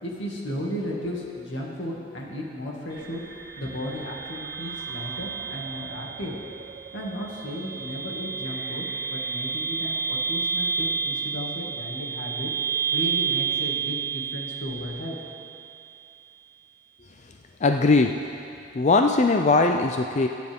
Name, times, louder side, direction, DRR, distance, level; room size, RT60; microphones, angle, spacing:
voice 1, 0.0-3.2 3.6-6.4 6.9-12.5 12.9-15.2, left 1 dB, 85° left, -2 dB, 2.3 m, -34 dB
sound 1, 2.9-15.9, right 6 dB, 45° right, 1.6 m, -31 dB
voice 2, 17.6-18.2 18.7-20.3, left 3 dB, 40° left, 5 dB, 0.4 m, -20 dB
22.5 x 9.3 x 3.7 m, 2.6 s
head